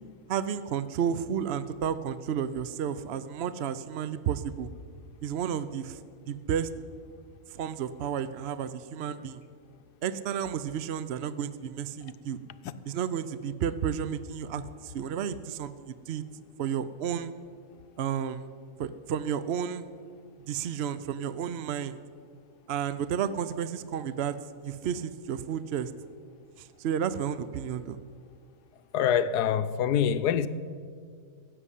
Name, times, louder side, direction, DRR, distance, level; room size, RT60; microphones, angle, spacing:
voice 1, 0.3-4.7 5.2-6.0 6.3-6.7 7.5-9.4 10.0-12.4 12.9-16.2 16.6-17.3 18.0-18.5 18.8-19.9 20.5-22.0 22.7-24.4 24.6-25.9 26.6-28.0, right 8 dB, 60° right, 0.7 m, -32 dB
voice 2, 28.9-30.5, left 9 dB, 90° left, 1.3 m, -25 dB
16.0 x 7.8 x 9.9 m
omnidirectional pair, 1.6 m